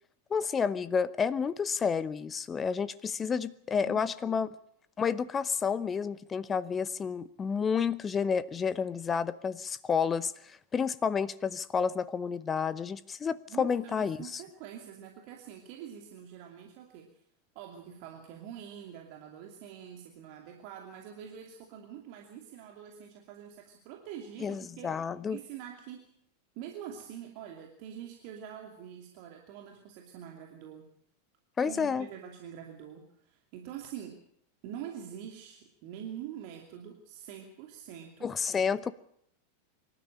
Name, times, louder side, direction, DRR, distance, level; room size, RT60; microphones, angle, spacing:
voice 1, 0.3-4.5 5.0-14.4 24.4-25.4 31.6-32.1 38.2-38.9, left 6 dB, 20° left, 18 dB, 0.7 m, -30 dB
voice 2, 3.8-4.4 13.5-17.2 17.5-25.0 25.3-26.1 26.5-30.9 31.6-34.2 34.6-38.3, right 9 dB, 45° right, 2 dB, 2.6 m, -45 dB
24.5 x 12.5 x 8.8 m, 0.70 s
figure-of-eight pair, 90°, 0 cm